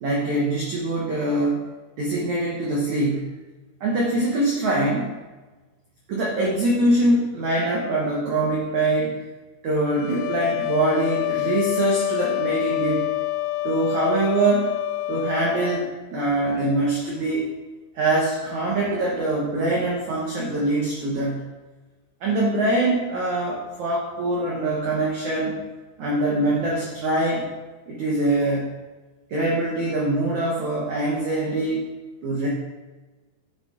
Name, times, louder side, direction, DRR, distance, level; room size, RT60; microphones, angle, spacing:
voice 1, 0.0-1.6 2.0-3.2 3.8-5.1 6.1-9.1 9.6-13.0 13.6-14.7 15.1-17.5 17.9-21.4 22.2-25.6 26.0-27.5 27.9-28.7 29.3-31.8 32.2-32.5, right 2 dB, 80° right, -3 dB, 1.6 m, -23 dB
sound 1, 9.9-15.9, left 17 dB, 90° left, 3.0 m, -27 dB
9.8 x 8.1 x 3.9 m, 1.2 s
omnidirectional pair, 5.5 m